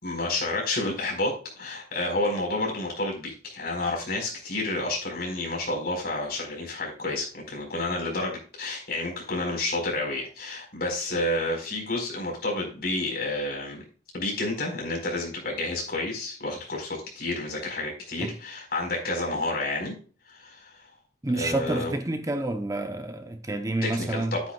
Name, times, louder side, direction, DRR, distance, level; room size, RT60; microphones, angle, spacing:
voice 1, 0.0-13.8 14.1-19.9 20.3-20.9 21.3-21.9 23.8-24.4, left 2 dB, 55° left, 4.5 m, -30 dB
voice 2, 21.2-24.4, right 2 dB, 20° right, 0.7 m, -29 dB
11.0 x 9.2 x 2.3 m
head